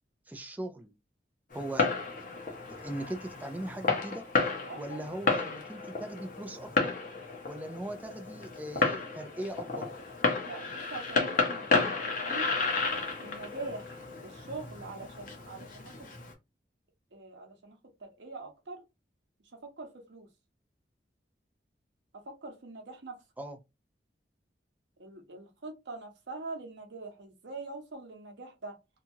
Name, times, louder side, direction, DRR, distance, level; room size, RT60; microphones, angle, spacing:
voice 1, 0.3-0.9 1.5-1.9 2.8-4.2 4.7-6.7 7.4-9.9 23.4-23.6, right 1 dB, 10° right, 0.4 m, -39 dB
Fireworks, 1.5-16.3, left 3 dB, 45° left, 0.7 m, -32 dB
voice 2, 4.7-5.1 10.5-11.9 12.2-12.5 13.2-16.1 17.1-18.8 19.6-20.3 22.2-23.2 25.0-28.8, right 3 dB, 80° right, 0.8 m, -43 dB
2.8 x 2.3 x 2.7 m
head